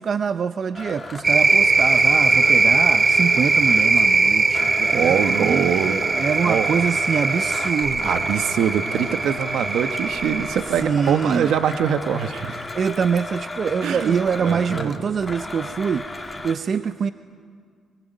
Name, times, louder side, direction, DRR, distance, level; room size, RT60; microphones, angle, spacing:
voice 1, 0.0-8.2 10.8-11.5 12.7-17.1, right 6 dB, 50° right, 11 dB, 0.7 m, -25 dB
Domestic sounds home sounds, 0.7-4.1 4.5-16.6, left 2 dB, 20° left, 2.3 m, -34 dB
sound 1, 1.2-10.6, right 3 dB, 30° right, 1.9 m, -20 dB
voice 2, 4.8-6.7 8.0-12.7 13.8-14.9, right 8 dB, 75° right, 10 dB, 1.1 m, -24 dB
23.5 x 22.5 x 9.2 m, 2.1 s
cardioid pair, 90°, 0 cm